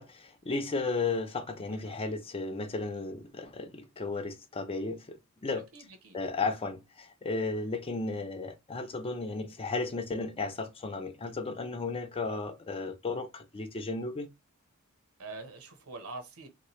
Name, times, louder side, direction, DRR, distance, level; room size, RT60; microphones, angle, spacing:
voice 1, 0.0-5.7 6.1-14.3, left 3 dB, 25° left, 0.4 m, -34 dB
voice 2, 5.5-6.2 15.2-16.5, right 3 dB, 75° right, 0.9 m, -45 dB
3.1 x 2.9 x 2.9 m
head